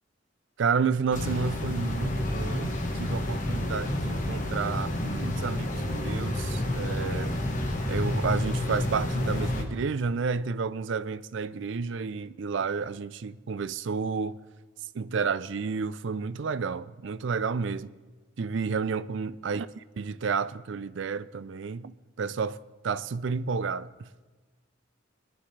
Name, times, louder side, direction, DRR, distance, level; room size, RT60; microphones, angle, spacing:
voice 1, 0.6-7.3 7.9-14.4 14.9-17.9 18.4-22.6 22.8-24.1, right 5 dB, 65° right, 0.4 m, -31 dB
sound 1, 1.1-9.6, left 1 dB, 40° left, 1.4 m, -29 dB
20.0 x 11.0 x 3.3 m
head